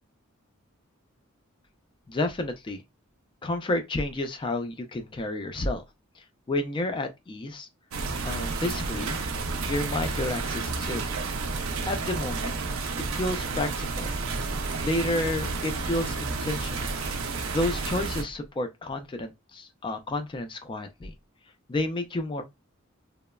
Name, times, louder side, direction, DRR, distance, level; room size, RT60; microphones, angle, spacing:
voice 1, 2.1-2.8 3.4-5.8 6.2-7.7 8.2-9.2 9.7-11.0 11.8-12.6 13.1-14.1 14.8-16.9 17.5-21.1 21.7-22.4, left 1 dB, 25° left, 0.3 m, -30 dB
sound 1, 7.9-18.2, right 3 dB, 70° right, 0.5 m, -31 dB
3.0 x 2.0 x 2.2 m
head